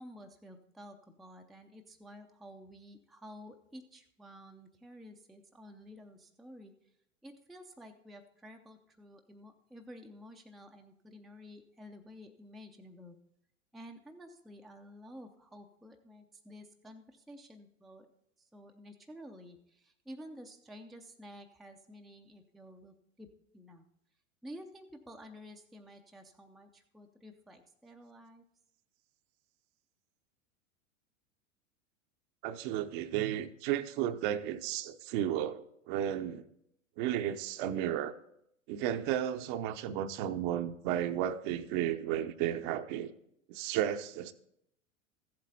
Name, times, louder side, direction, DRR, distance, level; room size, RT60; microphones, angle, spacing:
voice 1, 0.0-6.7 7.2-13.2 13.7-18.1 18.4-23.9 24.4-28.4, equal, ahead, 0.5 m, -51 dB
voice 2, 32.4-36.4 37.0-38.2 38.7-43.1 43.5-44.3, right 11 dB, 40° right, 0.7 m, -33 dB
15.0 x 7.6 x 4.2 m
figure-of-eight pair, 90°, 39 cm